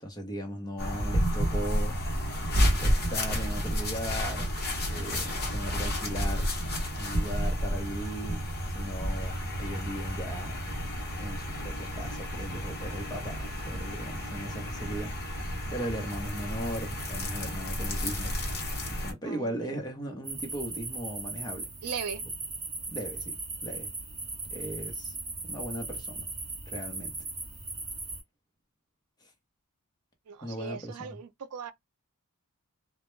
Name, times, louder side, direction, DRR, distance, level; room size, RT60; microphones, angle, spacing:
voice 1, 0.0-4.5 4.8-6.6 7.0-10.6 11.2-15.1 15.7-18.4 18.9-21.7 22.9-23.9 24.5-25.1 25.4-26.3 26.7-27.2 29.2-29.3 30.4-31.2, equal, 20° left, 0.7 m, -38 dB
sound 1, 0.8-19.1, equal, 45° left, 0.9 m, -31 dB
voice 2, 19.2-19.8 21.8-22.2 30.3-31.7, right 6 dB, 80° right, 0.4 m, -39 dB
sound 2, 20.2-28.2, right 3 dB, 20° right, 0.8 m, -38 dB
2.2 x 2.1 x 3.0 m
head